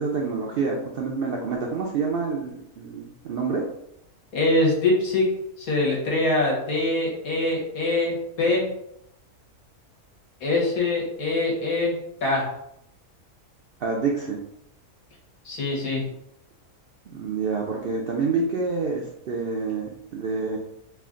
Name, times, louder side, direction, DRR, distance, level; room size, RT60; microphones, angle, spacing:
voice 1, 0.0-3.6 13.8-14.4 17.1-20.6, right 4 dB, 90° right, -1 dB, 0.5 m, -27 dB
voice 2, 4.3-5.2 5.6-8.7 10.4-12.0 12.2-12.5 15.4-16.0, left 2 dB, 70° left, -3 dB, 1.5 m, -23 dB
3.3 x 2.5 x 3.7 m, 0.76 s
omnidirectional pair, 1.6 m